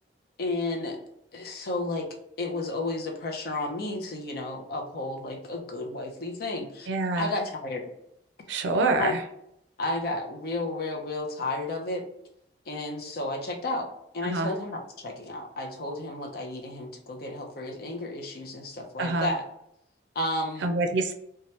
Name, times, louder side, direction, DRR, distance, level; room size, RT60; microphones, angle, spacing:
voice 1, 0.4-1.0 1.3-2.1 2.4-6.9 7.2-7.9 9.0-9.2 9.8-12.1 12.7-13.9 14.1-19.5 20.2-20.7, left 2 dB, 55° left, 2 dB, 0.6 m, -32 dB
voice 2, 6.9-7.3 8.5-9.2 14.2-14.5 19.0-19.3 20.6-21.1, right 3 dB, 75° right, 5 dB, 0.4 m, -26 dB
2.8 x 2.2 x 3.1 m, 0.76 s
head